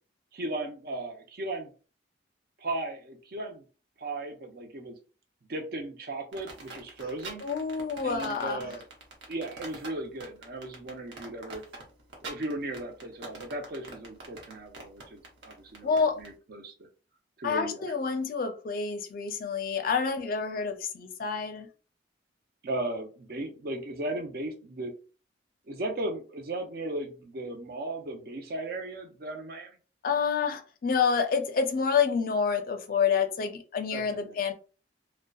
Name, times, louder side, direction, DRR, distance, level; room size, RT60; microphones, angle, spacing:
voice 1, 0.3-1.7 2.6-3.6 4.0-5.0 5.5-7.4 8.0-8.9 9.3-11.6 12.2-16.7 17.4-17.9 22.6-24.9 25.7-29.7 33.9-34.4, right 2 dB, 55° right, 0.5 m, -36 dB
sound 1, 6.3-16.3, right 3 dB, 80° right, 0.8 m, -44 dB
voice 2, 7.4-8.6 15.8-16.2 17.4-21.7 30.0-34.5, left 6 dB, 50° left, 0.4 m, -28 dB
2.6 x 2.1 x 2.2 m
head